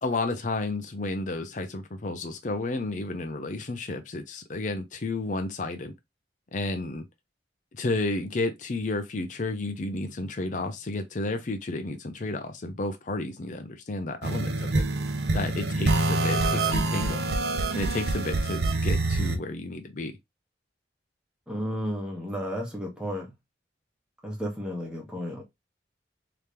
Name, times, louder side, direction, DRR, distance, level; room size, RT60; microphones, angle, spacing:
voice 1, 0.0-5.9 6.5-7.1 7.7-14.8 15.3-17.3 17.7-20.1, left 2 dB, 45° left, 0.6 m, -32 dB
sound 1, 14.2-19.4, right 2 dB, 60° right, 0.6 m, -26 dB
voice 2, 21.5-23.3 24.2-25.4, equal, 5° right, 1.3 m, -33 dB
3.4 x 2.9 x 3.3 m
head